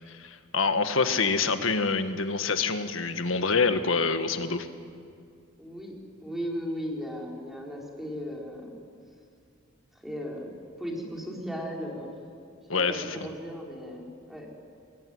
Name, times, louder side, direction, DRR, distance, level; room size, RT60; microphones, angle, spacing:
voice 1, 0.1-4.7 12.7-13.3, left 4 dB, 75° left, 9 dB, 1.6 m, -26 dB
voice 2, 5.6-8.7 10.0-12.1 12.7-14.6, equal, ahead, -2 dB, 4.7 m, -36 dB
27.5 x 21.5 x 9.5 m, 2.3 s
head